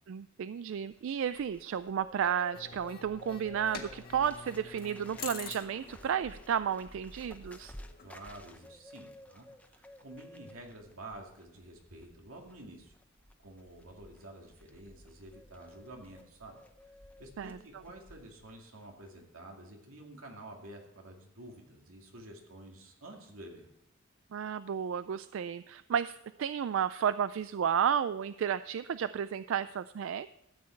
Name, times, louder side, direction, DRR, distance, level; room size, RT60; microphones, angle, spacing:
voice 1, 0.1-7.7 17.4-17.6 24.3-30.3, right 8 dB, 65° right, 14 dB, 0.3 m, -32 dB
Bird, 0.7-18.6 18.8-19.1, left 1 dB, 5° left, 0.7 m, -54 dB
sound 1, 2.5-8.7, left 6 dB, 45° left, 1.5 m, -48 dB
voice 2, 8.0-13.0 13.4-16.6 17.2-23.7, right 1 dB, 90° right, 1 dB, 2.3 m, -50 dB
13.5 x 8.6 x 4.5 m, 0.82 s
head